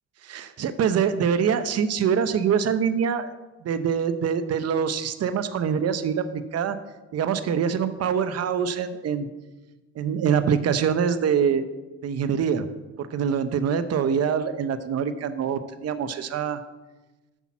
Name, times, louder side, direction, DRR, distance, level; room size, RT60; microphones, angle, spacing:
voice 1, 0.2-3.3 3.6-6.8 7.1-9.3 10.0-11.7 12.0-12.6 13.0-16.6, right 7 dB, 55° right, 10 dB, 0.8 m, -24 dB
8.2 x 5.8 x 7.3 m, 1.1 s
cardioid pair, 90°, 30 cm